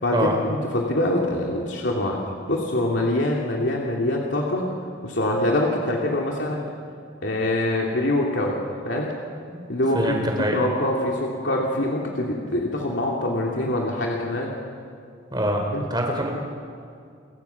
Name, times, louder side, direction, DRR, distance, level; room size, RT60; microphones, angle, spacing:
voice 1, 0.0-2.2 2.5-4.6 5.0-6.7 7.2-8.6 8.8-9.1 9.7-14.5 15.7-15.8, left 1 dB, 60° left, -2 dB, 3.0 m, -24 dB
voice 2, 9.9-10.6 15.3-15.6 15.9-16.3, right 1 dB, 20° right, 1 dB, 4.2 m, -24 dB
30.0 x 23.5 x 6.0 m, 2.3 s
head